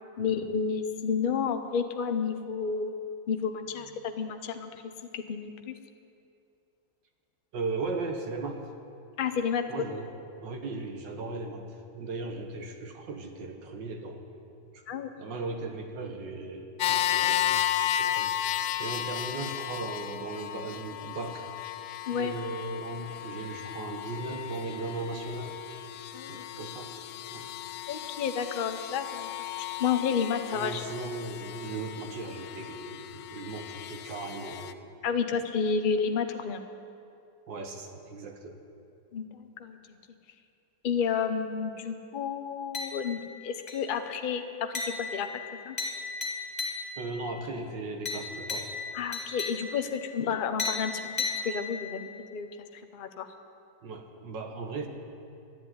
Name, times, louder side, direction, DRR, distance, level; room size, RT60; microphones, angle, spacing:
voice 1, 0.2-3.0 3.3-4.7 5.1-5.7 9.2-9.9 14.9-15.1 22.1-22.3 26.1-26.4 27.9-29.3 29.6-30.8 35.0-36.6 39.1-40.0 40.8-45.3 45.6-45.8 48.9-53.3, left 6 dB, 70° left, 8 dB, 0.4 m, -31 dB
voice 2, 7.5-8.6 9.7-11.7 11.9-14.2 14.7-17.6 18.0-18.3 18.8-21.5 22.1-25.6 26.3-27.0 27.3-27.5 30.5-34.8 37.5-38.6 47.0-48.7 53.8-54.9, right 3 dB, 70° right, 5 dB, 1.8 m, -37 dB
sound 1, 16.8-34.7, left 12 dB, 85° left, 1.4 m, -34 dB
sound 2, 42.7-43.3 43.7-44.1 44.7-47.2 48.1-50.0 50.6-52.0, left 4 dB, 20° left, 1.8 m, -35 dB
12.0 x 10.0 x 9.5 m, 2.5 s
omnidirectional pair, 2.1 m